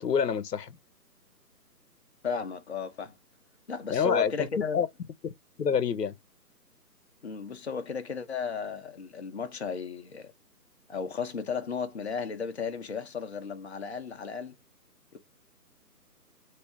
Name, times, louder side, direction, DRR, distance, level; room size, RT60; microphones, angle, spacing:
voice 1, 0.0-0.8 3.9-4.5 4.7-4.9 5.6-6.1, left 7 dB, 75° left, 0.8 m, -26 dB
voice 2, 2.2-3.1 3.7-4.8 7.2-10.3 10.9-14.6 15.1-15.2, left 5 dB, 45° left, 0.6 m, -34 dB
2.9 x 2.7 x 3.3 m
figure-of-eight pair, 145°, 48 cm